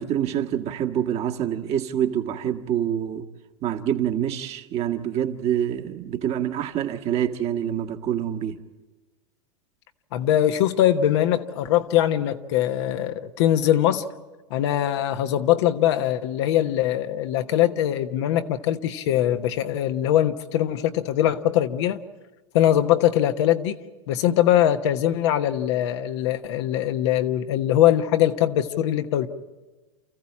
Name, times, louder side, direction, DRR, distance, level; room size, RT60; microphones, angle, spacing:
voice 1, 0.0-3.2 3.6-8.6, right 10 dB, 40° right, 1.6 m, -26 dB
voice 2, 10.1-14.0 14.5-22.0 22.5-23.8 24.1-29.3, left 12 dB, 65° left, 1.2 m, -22 dB
29.0 x 14.5 x 8.6 m
hypercardioid pair, 105°, 16 cm